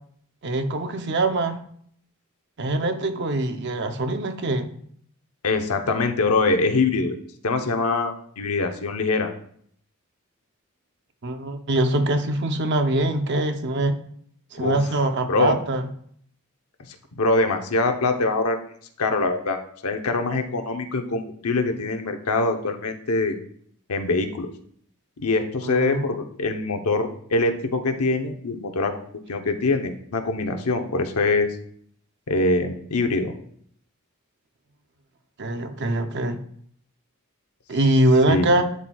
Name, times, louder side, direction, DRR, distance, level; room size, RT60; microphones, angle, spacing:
voice 1, 0.4-1.6 2.6-4.7 11.2-14.0 14.5-15.8 25.6-26.0 35.4-36.4 37.7-38.6, right 1 dB, 50° right, 7 dB, 0.6 m, -23 dB
voice 2, 5.4-7.2 7.4-9.3 14.6-14.8 15.3-15.6 17.2-18.6 19.0-23.4 23.9-24.5 25.2-28.9 29.3-31.6 32.3-33.3 38.3-38.5, left 3 dB, 90° left, 6 dB, 0.8 m, -23 dB
11.5 x 4.3 x 2.3 m, 0.63 s
head